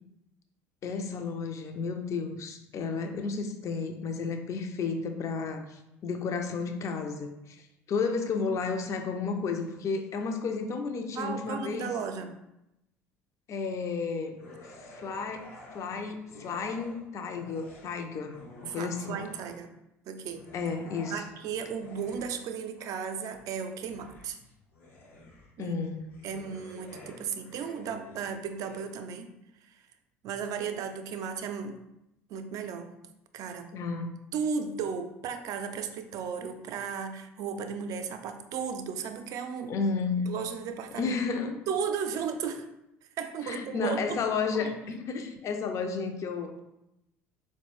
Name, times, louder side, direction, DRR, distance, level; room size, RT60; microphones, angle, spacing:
voice 1, 0.8-7.6 7.9-11.9 13.5-14.4 15.0-15.5 15.7-19.2 20.5-21.2 25.6-26.1 33.7-34.1 39.7-40.3 40.9-41.6 43.4-46.6, left 4 dB, 45° left, 6 dB, 0.5 m, -32 dB
voice 2, 11.1-12.3 18.7-19.7 20.1-20.4 21.1-24.4 25.6-25.7 26.2-29.3 29.6-29.8 30.2-31.8 32.3-32.9 33.3-33.7 34.3-39.8 40.2-41.2 41.7-42.7 43.2-44.2 44.6-44.7, right 6 dB, 55° right, 7 dB, 0.4 m, -35 dB
sound 1, 14.4-17.0 17.3-19.7 20.2-28.8, left 2 dB, 80° left, 0.9 m, -51 dB
4.0 x 2.1 x 3.0 m, 0.87 s
hypercardioid pair, 65°, 7 cm